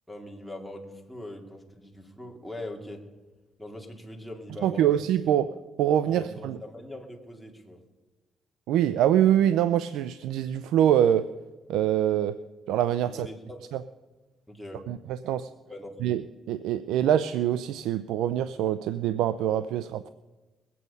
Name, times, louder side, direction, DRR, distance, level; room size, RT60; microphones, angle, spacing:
voice 1, 0.1-3.0 3.6-4.9 6.0-7.8 13.0-13.7 14.5-14.8 15.7-16.0, left 1 dB, ahead, 3 dB, 2.3 m, -41 dB
voice 2, 4.6-5.5 5.8-6.6 8.7-11.3 11.7-12.4 12.7-13.3 13.7-13.8 14.9-15.5 16.0-20.1, right 10 dB, 90° right, 13 dB, 0.4 m, -24 dB
20.5 x 8.4 x 5.4 m, 1.2 s
cardioid pair, 90°, 0 cm